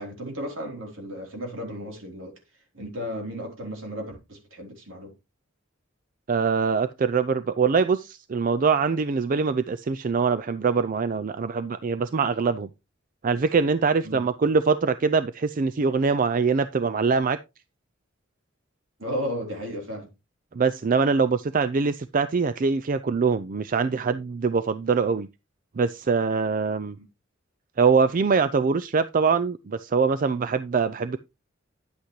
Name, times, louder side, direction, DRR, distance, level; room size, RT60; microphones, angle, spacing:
voice 1, 0.0-2.3 2.7-5.1 14.0-14.2 19.0-20.1 26.9-27.1, equal, 75° right, 3.6 m, -34 dB
voice 2, 6.3-12.7 13.2-17.4 20.5-25.3 25.8-27.0 27.8-31.2, right 5 dB, 45° right, 0.4 m, -23 dB
10.0 x 8.1 x 3.1 m
head